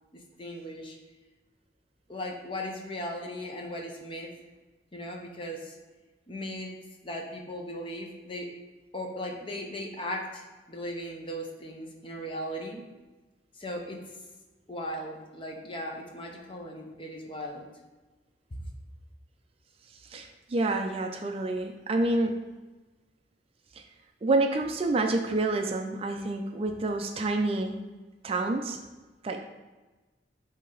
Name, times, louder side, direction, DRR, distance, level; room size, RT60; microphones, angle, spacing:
voice 1, 0.1-1.0 2.1-4.3 4.9-5.8 6.3-6.7 7.0-8.5 8.9-12.8 13.5-14.0 14.7-17.7 18.5-18.7, equal, 30° left, 1 dB, 0.7 m, -37 dB
voice 2, 20.1-22.3 24.2-27.8 28.2-28.8 29.2-29.4, right 2 dB, 30° right, 4 dB, 0.3 m, -28 dB
8.5 x 2.8 x 3.9 m, 1.2 s
head